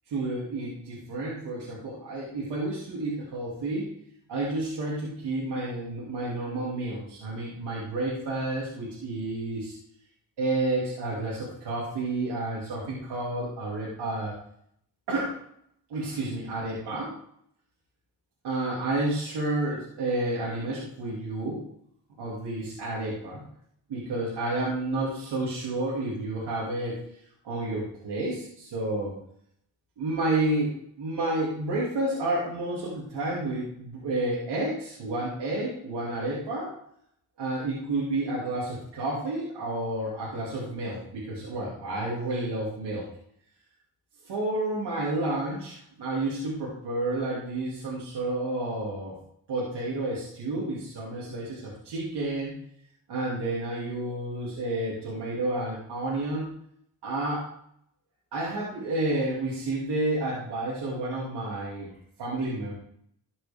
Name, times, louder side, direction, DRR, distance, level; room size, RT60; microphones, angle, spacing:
voice 1, 0.1-3.9 4.3-9.8 10.4-14.3 15.1-15.4 15.9-17.1 18.4-21.6 22.2-23.4 23.9-27.0 27.4-29.1 30.0-36.7 37.4-43.1 44.2-49.2 49.5-52.5 53.1-56.5 57.0-57.5 58.3-61.9 62.2-62.7, right 2 dB, 90° right, -7 dB, 2.8 m, -30 dB
13.0 x 5.9 x 3.6 m, 0.70 s
cardioid pair, 65°, 40 cm